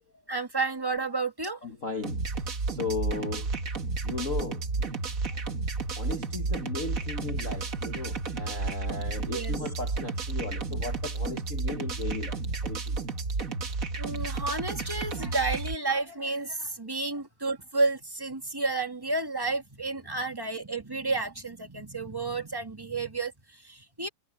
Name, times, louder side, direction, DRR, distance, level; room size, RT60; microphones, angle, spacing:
voice 1, 0.3-1.6 5.3-5.4 9.3-9.6 14.0-24.1, right 3 dB, 10° right, 1.0 m, -31 dB
voice 2, 1.6-2.2 2.6-3.5 4.0-5.0 6.0-13.0, left 4 dB, 45° left, 1.0 m, -36 dB
sound 1, 2.0-15.8, right 3 dB, 35° right, 1.5 m, -32 dB
omnidirectional pair, 3.5 m